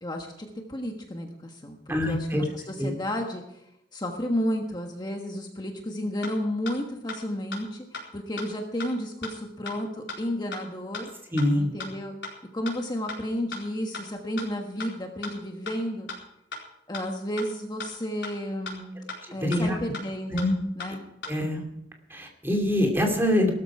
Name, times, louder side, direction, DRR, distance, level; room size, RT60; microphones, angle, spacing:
voice 1, 0.0-11.1 11.6-12.1 12.5-16.1 16.9-19.0 19.3-20.5 20.7-21.0, equal, 25° left, 2 dB, 1.4 m, -32 dB
voice 2, 1.9-2.4 2.8-2.9 11.3-11.7 19.4-19.8 20.3-20.5 21.3-21.6 22.1-23.5, left 1 dB, 15° right, 2 dB, 2.7 m, -24 dB
sound 1, 6.2-6.3 6.7-6.8 7.1-7.2 7.5-7.6 7.9-8.0 8.4-8.5 8.8-8.9 9.2-9.3 9.7-9.8 10.1-10.2 10.5-10.6 10.9-11.0 11.4-11.5 11.8-11.9 12.2-12.3 12.7-12.8 13.1-13.2 13.5-13.6 13.9-14.0 14.4-14.5 14.8-14.9 15.2-15.3 15.7-15.8 16.1-16.2 16.5-16.6 16.9-17.0 17.4-17.5 17.8-17.9 18.2-18.3 18.7-18.8 19.1-19.2 19.5-19.6 19.9-20.0 20.4-20.5 20.8-20.9 21.2-21.3, left 3 dB, 75° left, 4.4 m, -35 dB
17.0 x 13.5 x 4.8 m, 0.82 s
head